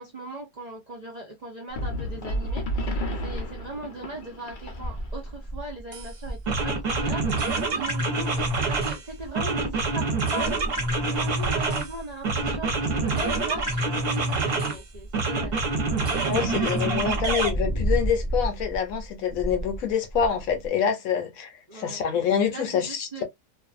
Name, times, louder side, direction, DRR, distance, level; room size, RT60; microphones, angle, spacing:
voice 1, 0.0-2.9 3.2-15.6 21.7-22.0 22.5-23.2, right 2 dB, 65° right, 0.4 m, -38 dB
sound 1, 1.7-3.7 4.0-4.1 4.4-20.7, right 1 dB, 25° left, 0.4 m, -35 dB
sound 2, 1.8-5.3, equal, 85° left, 0.4 m, -32 dB
sound 3, 5.9-6.1 6.5-9.0 9.3-11.9 12.2-14.8 15.1-17.5, right 3 dB, 45° right, 0.9 m, -26 dB
voice 2, 16.2-23.2, left 7 dB, 70° left, 1.0 m, -26 dB
2.6 x 2.4 x 2.3 m
omnidirectional pair, 1.7 m